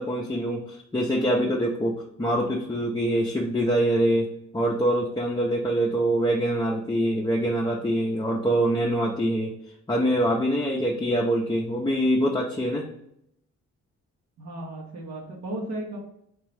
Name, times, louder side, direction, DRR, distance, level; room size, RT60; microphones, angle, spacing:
voice 1, 0.0-4.3 4.5-9.5 9.9-12.9, right 1 dB, 15° left, -2 dB, 0.6 m, -24 dB
voice 2, 14.4-16.0, right 1 dB, 65° right, -2 dB, 1.1 m, -35 dB
3.6 x 2.9 x 3.3 m, 0.75 s
cardioid pair, 90°, 30 cm